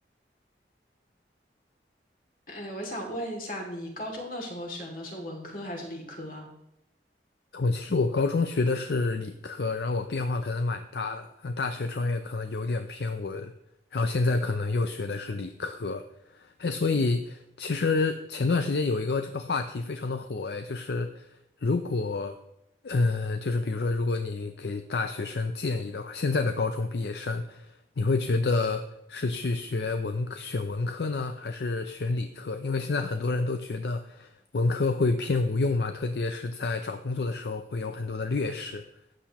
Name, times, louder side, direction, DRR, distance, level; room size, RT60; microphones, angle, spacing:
voice 1, 2.5-6.5, equal, 50° left, 1 dB, 2.5 m, -37 dB
voice 2, 7.5-13.5 13.9-16.0 16.3-21.3 21.6-22.4 22.8-38.8, left 3 dB, 65° left, 8 dB, 0.5 m, -28 dB
13.0 x 8.5 x 3.0 m, 0.82 s
head